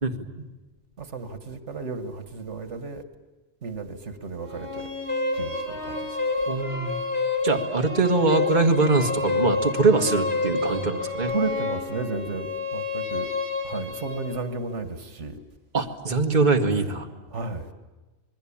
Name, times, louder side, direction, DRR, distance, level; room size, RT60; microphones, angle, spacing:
voice 1, 1.0-3.0 3.6-4.9 5.4-6.0 11.3-12.5 12.7-13.3 13.6-15.3 17.3-17.6, right 4 dB, 85° right, 9 dB, 1.9 m, -33 dB
sound 1, 4.4-14.4, left 3 dB, 65° right, 4.8 m, -29 dB
voice 2, 6.5-7.0 7.4-11.3 15.7-17.1, right 3 dB, 40° right, 3 dB, 1.9 m, -22 dB
27.5 x 21.0 x 8.6 m, 1.2 s
omnidirectional pair, 1.2 m